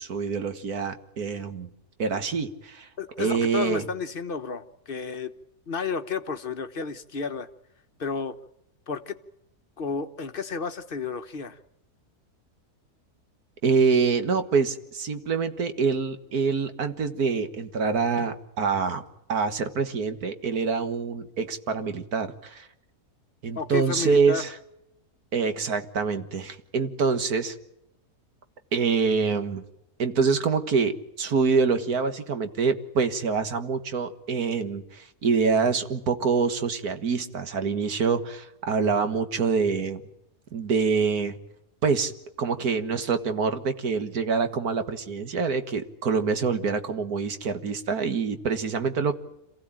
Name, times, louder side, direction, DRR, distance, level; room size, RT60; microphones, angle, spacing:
voice 1, 0.0-1.7 2.0-2.9 3.2-3.8 13.6-19.0 19.3-22.7 23.4-24.5 25.3-27.6 28.7-29.6 30.0-40.0 40.5-41.4 41.8-42.1 42.4-49.2, right 5 dB, 70° right, 9 dB, 2.1 m, -25 dB
voice 2, 3.0-5.3 5.7-7.5 8.0-8.4 8.9-9.2 9.8-11.6 23.5-24.4, left 5 dB, 40° left, 9 dB, 1.2 m, -32 dB
27.5 x 16.0 x 8.9 m, 0.86 s
omnidirectional pair, 1.7 m